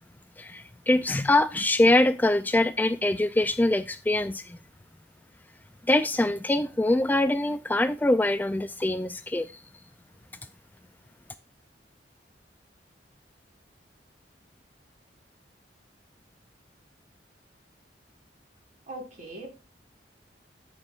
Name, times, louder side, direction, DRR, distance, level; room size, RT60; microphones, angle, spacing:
voice 1, 0.4-4.6 5.9-9.6, left 2 dB, 10° left, 12 dB, 0.3 m, -24 dB
voice 2, 18.9-19.5, right 1 dB, 45° right, -1 dB, 4.2 m, -39 dB
13.5 x 6.1 x 2.4 m, 0.30 s
head